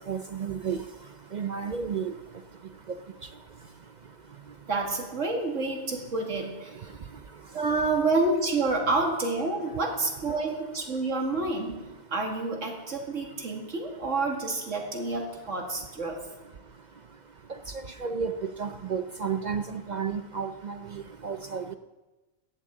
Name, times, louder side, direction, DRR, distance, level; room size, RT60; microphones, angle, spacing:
voice 1, 0.1-0.8 1.3-2.1 18.0-18.3 18.6-21.7, right 6 dB, 50° right, 8 dB, 0.5 m, -32 dB
voice 2, 4.7-6.8 7.5-11.8 12.1-16.2, right 3 dB, 85° right, 1 dB, 2.5 m, -28 dB
18.0 x 14.0 x 3.7 m, 1.1 s
omnidirectional pair, 1.3 m